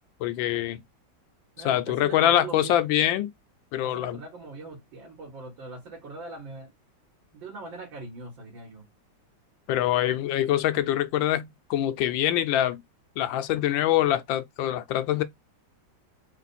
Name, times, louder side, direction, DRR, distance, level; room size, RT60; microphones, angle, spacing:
voice 1, 0.2-0.8 1.6-3.3 3.7-4.2 9.7-12.8 13.2-15.2, left 12 dB, 85° left, 1.4 m, -24 dB
voice 2, 1.6-2.8 3.8-6.7 7.3-8.9, right 3 dB, 80° right, 2.3 m, -41 dB
4.4 x 2.4 x 4.1 m
omnidirectional pair, 2.1 m